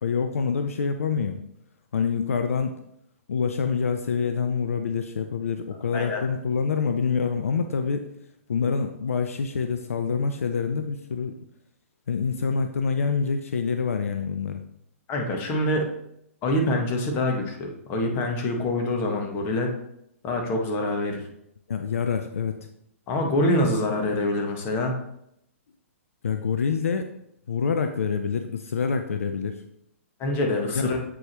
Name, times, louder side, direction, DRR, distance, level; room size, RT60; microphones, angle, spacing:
voice 1, 0.0-1.4 1.9-2.7 3.3-8.1 8.5-11.3 12.1-14.6 21.7-22.5 26.2-27.1 27.5-29.5 30.7-30.9, left 5 dB, 75° left, 7 dB, 0.6 m, -26 dB
voice 2, 15.1-15.9 16.4-19.7 20.2-21.2 23.1-25.0 30.2-31.0, left 1 dB, 30° left, 2 dB, 1.4 m, -25 dB
7.8 x 4.9 x 3.0 m, 0.76 s
hypercardioid pair, 120°, 8 cm